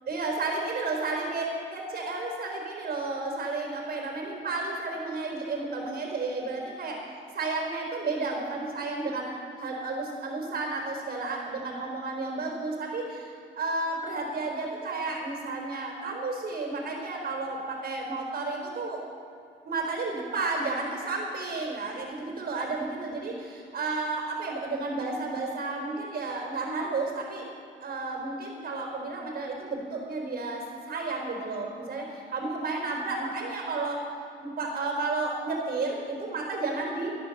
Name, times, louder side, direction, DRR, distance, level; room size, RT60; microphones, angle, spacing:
voice 1, 0.1-7.0 7.3-19.0 19.6-27.4 27.8-34.0 34.4-37.2, right 3 dB, 50° right, 1 dB, 4.1 m, -32 dB
13.0 x 11.5 x 6.6 m, 2.4 s
cardioid pair, 90°, 20 cm